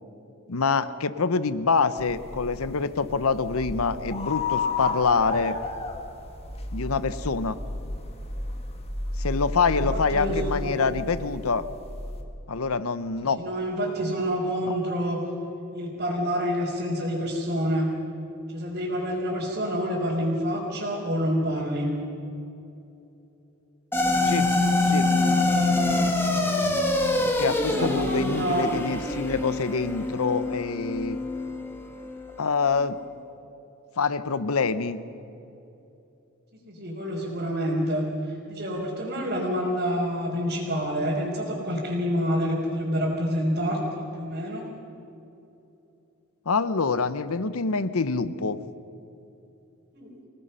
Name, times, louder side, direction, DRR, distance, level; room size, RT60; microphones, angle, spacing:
voice 1, 0.5-5.6 6.7-7.6 9.2-11.6 12.5-13.4 24.2-24.5 24.9-25.1 27.1-31.2 32.4-33.0 34.0-35.0 46.5-48.6, left 4 dB, 75° left, 14 dB, 0.8 m, -26 dB
sound 1, 2.0-12.2, left 2 dB, 25° left, 1.7 m, -33 dB
voice 2, 9.7-10.8 13.3-15.2 15.7-17.9 18.5-21.9 27.2-28.7 36.7-44.7 49.9-50.1, equal, 45° right, -6 dB, 4.2 m, -28 dB
sound 2, 23.9-32.4, left 2 dB, 10° left, 1.8 m, -25 dB
27.0 x 18.0 x 5.6 m, 2.9 s
head